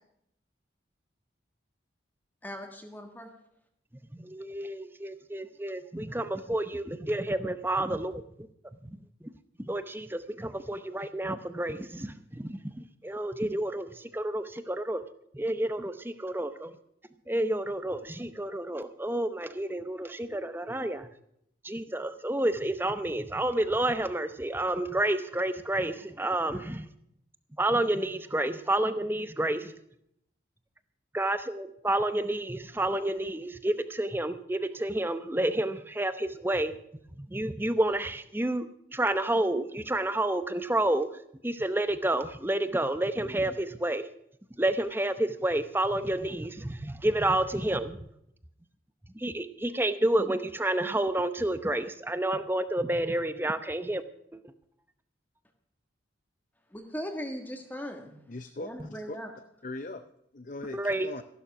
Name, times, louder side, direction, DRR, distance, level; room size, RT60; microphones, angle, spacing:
voice 1, 2.4-3.3 56.7-58.2 58.6-59.3, equal, 10° left, 4 dB, 1.5 m, -39 dB
voice 2, 4.1-8.5 8.8-9.3 9.6-15.0 15.3-16.7 17.3-21.1 21.6-26.9 27.6-29.7 31.1-36.8 37.2-41.1 41.4-44.1 44.6-48.1 49.1-54.0 54.3-54.4 60.7-61.1, right 1 dB, 10° right, 12 dB, 0.7 m, -30 dB
voice 3, 58.3-59.2 59.6-60.0 60.3-61.2, left 2 dB, 40° left, 9 dB, 0.6 m, -40 dB
14.5 x 11.5 x 6.0 m, 0.74 s
head